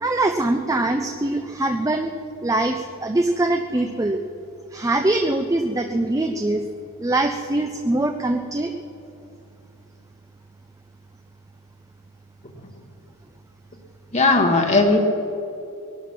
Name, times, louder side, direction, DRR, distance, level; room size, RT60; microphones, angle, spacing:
voice 1, 0.0-2.1 2.4-4.2 4.7-6.6 7.0-8.7, right 2 dB, 15° right, 6 dB, 0.5 m, -23 dB
voice 2, 14.1-15.0, left 3 dB, 30° left, 2 dB, 1.2 m, -17 dB
20.0 x 12.0 x 6.0 m, 2.8 s
head